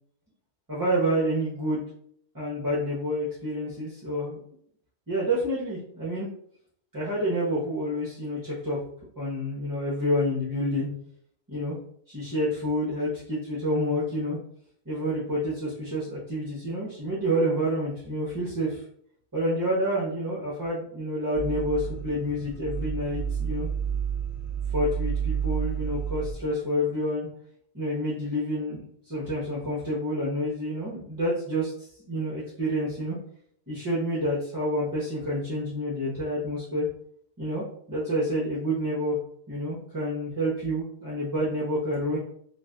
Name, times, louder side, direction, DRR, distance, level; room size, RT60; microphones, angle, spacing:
voice 1, 0.7-1.8 2.3-4.5 5.1-6.3 6.9-8.8 9.2-10.9 11.5-11.8 12.1-14.4 14.9-18.8 19.3-23.7 24.7-27.3 27.7-33.2 33.7-36.9 37.4-39.2 39.5-42.2, equal, 20° right, -8 dB, 0.7 m, -28 dB
sound 1, 21.4-26.3, right 8 dB, 65° left, 1.0 m, -30 dB
2.5 x 2.4 x 3.3 m, 0.65 s
omnidirectional pair, 1.1 m